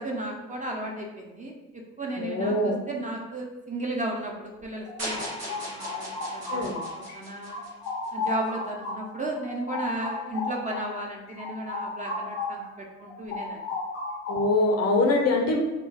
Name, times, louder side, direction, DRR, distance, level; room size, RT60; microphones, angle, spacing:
voice 1, 0.0-7.6 8.1-13.7, right 1 dB, 20° right, -1 dB, 0.7 m, -35 dB
voice 2, 2.2-2.8 6.5-6.8 14.3-15.6, left 2 dB, 40° left, 2 dB, 0.7 m, -23 dB
sound 1, 4.6-7.2 7.5-12.7 13.0-14.7, left 3 dB, 85° left, 1.0 m, -34 dB
sound 2, 5.0-8.3, right 1 dB, 85° right, 1.2 m, -38 dB
3.8 x 2.2 x 3.5 m, 1.1 s
hypercardioid pair, 50°, 39 cm